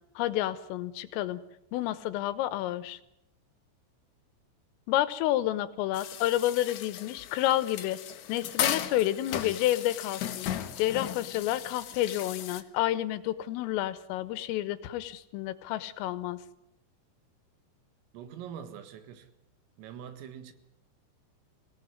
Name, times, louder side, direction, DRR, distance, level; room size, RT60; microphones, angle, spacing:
voice 1, 0.2-1.4 1.7-3.0 4.9-8.0 8.3-10.5 10.8-16.4, left 14 dB, 85° left, 3.7 m, -30 dB
sound 1, 5.9-12.6, left 11 dB, 70° left, 3.2 m, -36 dB
voice 2, 18.1-19.3 19.8-20.5, right 8 dB, 90° right, 4.4 m, -43 dB
24.0 x 17.5 x 9.7 m
omnidirectional pair, 5.8 m